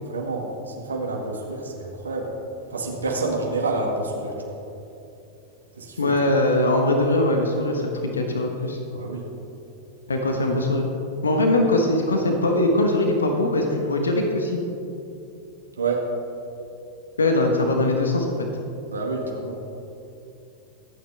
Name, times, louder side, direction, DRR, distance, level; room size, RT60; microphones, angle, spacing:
voice 1, 0.1-2.3 2.7-4.6 5.7-6.1 8.9-9.3 15.8-16.1 18.9-19.6, right 3 dB, 75° right, 0 dB, 1.9 m, -28 dB
voice 2, 6.0-8.8 10.1-10.9 11.2-14.6 17.2-18.3, left 1 dB, 75° left, 3 dB, 1.3 m, -21 dB
23.5 x 9.5 x 3.5 m, 2.8 s
figure-of-eight pair, 90°, 0 cm